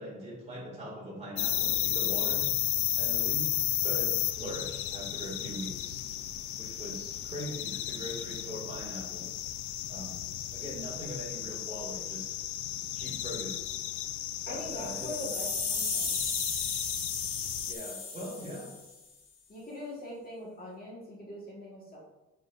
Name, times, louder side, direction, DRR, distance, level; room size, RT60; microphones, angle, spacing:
voice 1, 0.0-2.5 2.9-6.0 6.6-9.3 9.9-10.2 10.5-12.4 12.9-13.8 14.4-15.1 17.7-18.7, equal, 20° right, -4 dB, 2.2 m, -41 dB
sound 1, 1.4-17.7, left 13 dB, 70° left, 0.5 m, -33 dB
voice 2, 14.5-16.2 19.5-22.0, left 1 dB, 30° left, -4 dB, 1.5 m, -42 dB
Final angelic sound, 14.7-18.9, left 4 dB, 50° left, 1.5 m, -35 dB
8.9 x 4.5 x 2.5 m, 1.0 s
cardioid pair, 150°, 31 cm